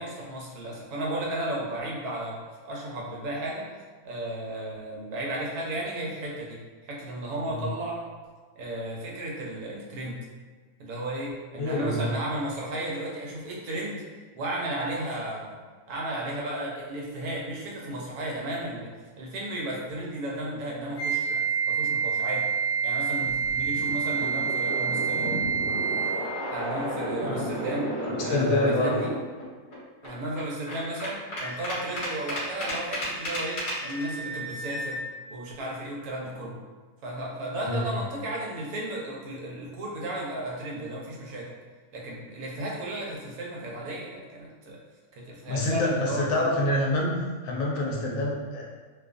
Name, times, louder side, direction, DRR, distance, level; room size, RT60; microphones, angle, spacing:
voice 1, 0.0-3.7 4.0-8.0 8.6-10.2 10.8-14.0 14.3-15.6 15.9-18.9 19.2-22.5 22.8-25.4 26.5-27.9 28.2-29.1 30.0-35.0 35.3-36.6 37.0-41.5 41.9-44.8 45.1-46.5, right 1 dB, 85° right, -3 dB, 1.1 m, -34 dB
voice 2, 11.6-12.1 27.2-27.5 28.0-28.9 37.6-37.9 45.5-47.1 47.4-48.6, left 1 dB, 70° left, -2 dB, 0.9 m, -26 dB
Wind instrument woodwind instrument, 21.0-26.3, right 6 dB, 30° right, 0.8 m, -27 dB
sound 1, 23.2-29.4 29.7-29.8 30.0-34.0, equal, 40° left, 0.9 m, -33 dB
Wind instrument woodwind instrument 2, 31.4-35.0, equal, 20° left, 0.4 m, -40 dB
2.6 x 2.3 x 2.4 m, 1.4 s
omnidirectional pair, 1.5 m